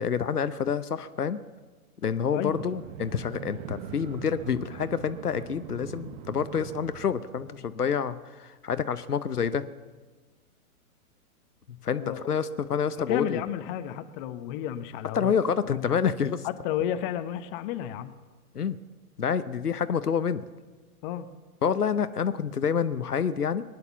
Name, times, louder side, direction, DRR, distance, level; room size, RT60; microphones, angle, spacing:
voice 1, 0.0-1.4 2.0-9.7 11.7-13.4 15.1-16.5 18.5-18.8 19.2-20.4 21.6-23.6, left 7 dB, 90° left, 13 dB, 0.8 m, -28 dB
voice 2, 2.3-2.6 11.9-12.3 12.7-15.3 15.7-16.0 16.4-18.1 21.0-21.3, left 11 dB, 35° left, 10 dB, 1.0 m, -32 dB
sound 1, 2.5-7.7, right 9 dB, 35° right, 0.9 m, -42 dB
20.5 x 9.7 x 7.2 m, 1.4 s
figure-of-eight pair, 110°, 45 cm